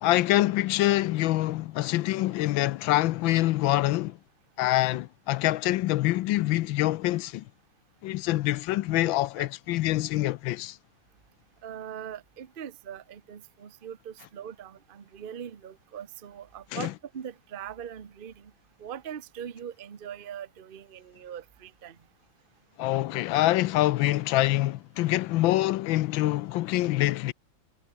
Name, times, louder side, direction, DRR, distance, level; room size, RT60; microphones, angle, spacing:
voice 1, 0.0-4.2 4.6-7.4 8.0-10.8 16.7-16.9 22.8-27.3, left 16 dB, 75° left, 1.3 m, -25 dB
voice 2, 11.6-18.5 18.8-22.0, right 9 dB, 40° right, 0.8 m, -41 dB
omnidirectional pair, 2.2 m